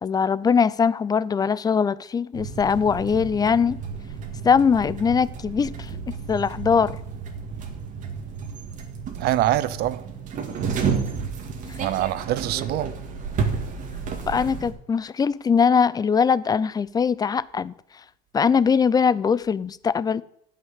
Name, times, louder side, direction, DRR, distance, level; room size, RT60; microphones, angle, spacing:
voice 1, 0.0-3.8 4.4-5.9 6.3-7.0 14.3-17.7 18.3-20.2, left 6 dB, 20° left, 0.5 m, -21 dB
sound 1, 2.3-14.7, right 5 dB, 50° right, 2.1 m, -31 dB
voice 2, 9.1-10.1 11.8-12.9, right 14 dB, 65° right, 0.7 m, -24 dB
9.3 x 5.8 x 8.4 m
cardioid pair, 110°, 17 cm